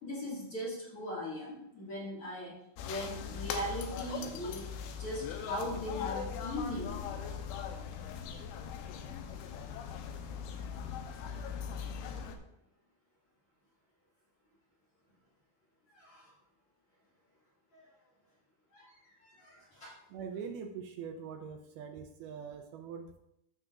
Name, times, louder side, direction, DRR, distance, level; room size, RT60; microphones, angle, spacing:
voice 1, 0.0-2.5 2.8-4.7 5.0-7.1 15.9-16.3 17.7-17.9 18.7-20.0, equal, 40° left, -7 dB, 2.3 m, -39 dB
sound 1, 2.8-12.4, left 7 dB, 80° left, 2.6 m, -40 dB
voice 2, 20.1-23.2, right 6 dB, 80° right, 4 dB, 2.4 m, -43 dB
13.5 x 6.7 x 2.5 m, 0.80 s
omnidirectional pair, 4.8 m